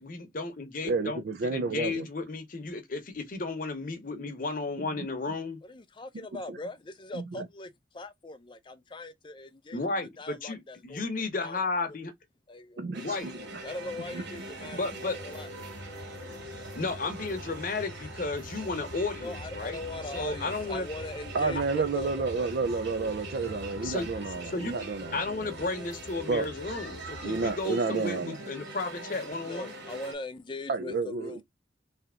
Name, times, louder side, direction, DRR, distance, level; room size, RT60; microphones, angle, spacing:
voice 1, 0.0-1.2 1.5-5.6 9.7-12.1 13.0-13.3 14.8-15.2 16.7-19.8 20.1-20.9 23.8-24.1 24.5-24.7 25.1-29.7, left 3 dB, 50° left, 0.8 m, -33 dB
voice 2, 0.9-2.1 6.5-6.6 7.1-7.5 12.8-13.3 14.1-14.2 21.3-25.5 26.3-26.4 27.2-28.4 30.7-31.4, right 4 dB, 60° right, 0.4 m, -30 dB
voice 3, 5.6-9.8 10.2-11.1 11.4-11.6 12.5-12.9 13.6-15.5 19.2-22.5 29.4-31.4, left 2 dB, 25° left, 0.5 m, -41 dB
sound 1, 12.9-30.1, right 1 dB, 75° right, 2.1 m, -43 dB
sound 2, 13.2-27.7, left 1 dB, 80° left, 1.0 m, -47 dB
3.4 x 2.8 x 3.7 m
head